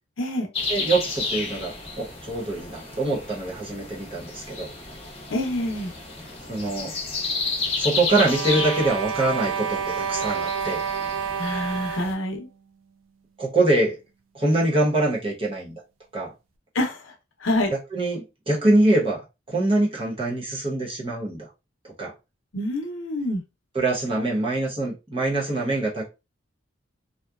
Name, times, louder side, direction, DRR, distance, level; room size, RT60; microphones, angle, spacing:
voice 1, 0.2-0.5 5.3-5.9 11.4-12.5 16.7-17.1 17.4-17.7 22.5-23.4, left 1 dB, 70° left, 4 dB, 0.7 m, -26 dB
sound 1, 0.5-12.1, left 3 dB, 30° left, 0.8 m, -32 dB
voice 2, 0.7-4.7 6.5-6.9 7.8-9.8 10.1-10.8 13.4-13.9 14.3-15.8 16.1-16.3 17.9-19.2 19.5-21.5 21.8-22.1 23.7-26.1, right 2 dB, 30° right, -3 dB, 0.9 m, -24 dB
sound 2, 8.1-12.3, right 6 dB, 90° right, 0.4 m, -29 dB
2.7 x 2.2 x 2.3 m, 0.26 s
head